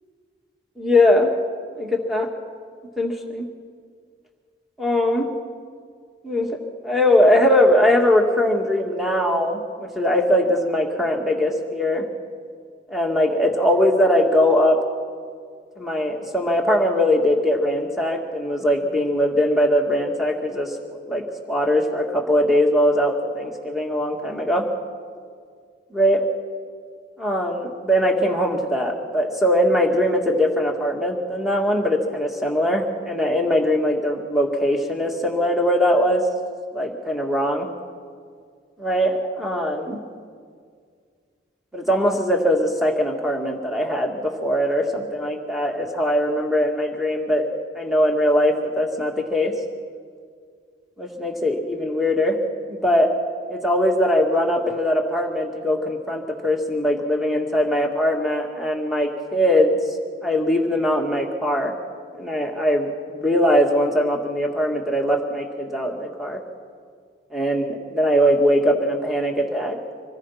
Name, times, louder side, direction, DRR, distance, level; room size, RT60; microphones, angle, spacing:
voice 1, 0.8-1.3 1.7-2.3 3.0-3.5 4.8-5.3 6.2-6.6 6.8-12.1 12.9-14.8 15.8-20.8 21.1-24.7 25.9-26.2 27.2-36.3 36.7-37.7 38.8-40.0 41.7-49.5 51.0-52.4 52.7-53.1 53.5-60.0 60.2-61.7 62.1-66.4 67.3-69.8, left 1 dB, ahead, 1 dB, 2.0 m, -21 dB
26.0 x 19.5 x 5.8 m, 2.1 s
head